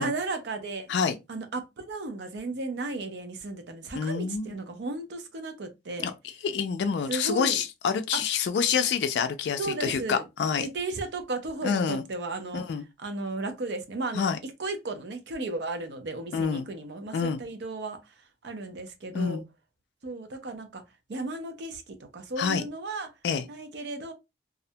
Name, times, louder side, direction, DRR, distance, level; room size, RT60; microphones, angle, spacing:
voice 1, 0.0-0.9 1.3-6.1 7.1-7.6 8.1-8.2 9.6-10.3 10.6-12.6 13.0-18.1 18.4-19.4 20.0-20.8 21.1-23.1 23.5-24.1, right 2 dB, 75° right, 0.6 m, -34 dB
voice 2, 4.0-4.5 6.0-6.1 6.4-10.7 11.6-12.0 12.5-12.8 14.1-14.4 16.3-16.7 17.1-17.4 19.1-19.4 22.4-22.6 23.2-23.4, left 6 dB, 70° left, 0.3 m, -27 dB
2.4 x 2.1 x 2.6 m
head